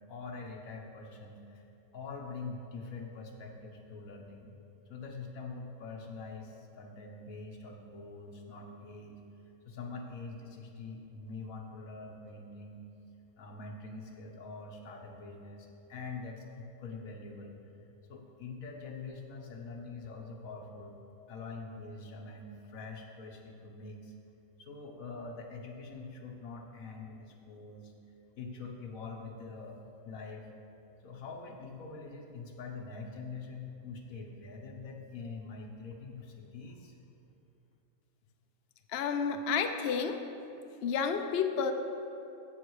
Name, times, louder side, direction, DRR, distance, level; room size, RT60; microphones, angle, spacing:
voice 1, 0.1-1.6 1.9-4.6 4.9-9.2 9.6-12.8 13.4-17.6 18.1-21.0 21.3-24.1 24.6-27.9 28.4-30.5 31.0-37.0, left 4 dB, 85° left, 2 dB, 1.5 m, -44 dB
voice 2, 38.9-40.2 40.8-41.7, left 6 dB, 60° left, 6 dB, 0.8 m, -30 dB
15.0 x 5.8 x 4.8 m, 2.8 s
omnidirectional pair, 1.4 m